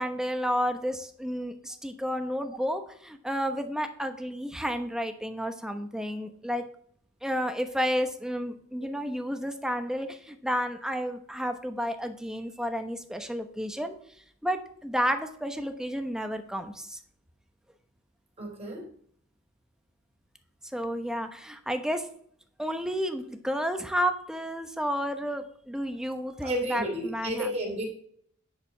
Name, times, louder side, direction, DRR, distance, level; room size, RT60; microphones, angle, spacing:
voice 1, 0.0-6.6 7.2-13.9 14.4-17.0 20.7-22.1 22.6-27.5, equal, 5° right, 7 dB, 0.9 m, -31 dB
voice 2, 18.4-18.9 26.4-27.9, equal, 30° right, -1 dB, 3.5 m, -32 dB
10.5 x 5.0 x 5.9 m, 0.62 s
head